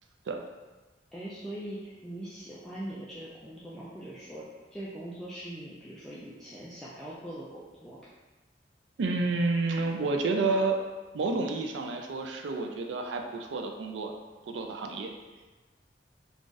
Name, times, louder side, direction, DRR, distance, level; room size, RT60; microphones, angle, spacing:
voice 1, 1.1-4.4 4.7-8.0, right 1 dB, 5° left, -8 dB, 0.3 m, -41 dB
voice 2, 9.0-10.8 11.1-14.1 14.5-15.1, right 3 dB, 80° right, 3 dB, 0.4 m, -30 dB
2.5 x 2.4 x 3.8 m, 1.2 s
head